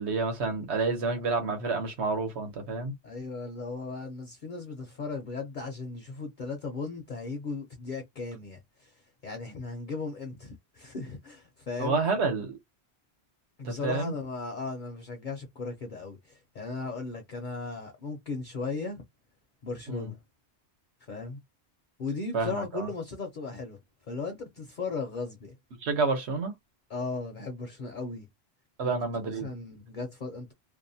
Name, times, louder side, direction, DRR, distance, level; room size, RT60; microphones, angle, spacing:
voice 1, 0.0-2.9 11.8-12.6 13.6-14.1 19.9-20.1 22.3-22.9 25.8-26.5 28.8-29.5, right 4 dB, 80° right, 1.1 m, -29 dB
voice 2, 1.0-1.4 3.0-12.0 13.6-19.0 19.6-20.2 21.1-21.4 22.0-23.8 24.1-25.6 26.9-28.3 28.8-30.5, left 4 dB, 55° left, 0.7 m, -37 dB
2.6 x 2.1 x 2.6 m
omnidirectional pair, 1.1 m